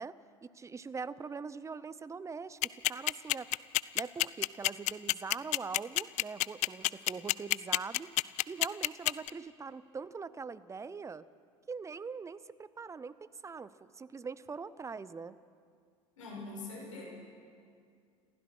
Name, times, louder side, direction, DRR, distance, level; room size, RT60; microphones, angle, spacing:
voice 1, 0.0-3.5 3.9-8.1 8.5-11.2 11.7-15.4, right 5 dB, 20° right, 17 dB, 0.7 m, -42 dB
sound 1, 2.6-9.3, left 19 dB, 45° left, 0.5 m, -27 dB
voice 2, 16.2-17.0, left 3 dB, 80° left, -2 dB, 6.9 m, -43 dB
29.0 x 15.5 x 6.2 m, 2.2 s
hypercardioid pair, 80°, 16 cm